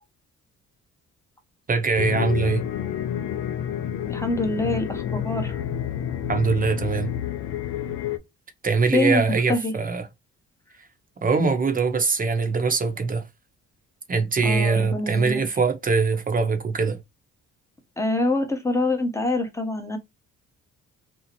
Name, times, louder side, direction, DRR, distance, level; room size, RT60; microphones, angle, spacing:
voice 1, 1.7-2.6 6.3-7.1 8.6-10.1 11.2-13.3 14.1-17.0, right 4 dB, 30° right, 0.7 m, -22 dB
sound 1, 2.0-8.2, left 9 dB, 80° left, 0.5 m, -29 dB
voice 2, 4.1-5.6 8.9-9.2 9.5-9.7 14.4-15.4 18.0-20.0, left 2 dB, 10° left, 0.8 m, -25 dB
2.7 x 2.0 x 2.8 m
cardioid pair, 90°, 30 cm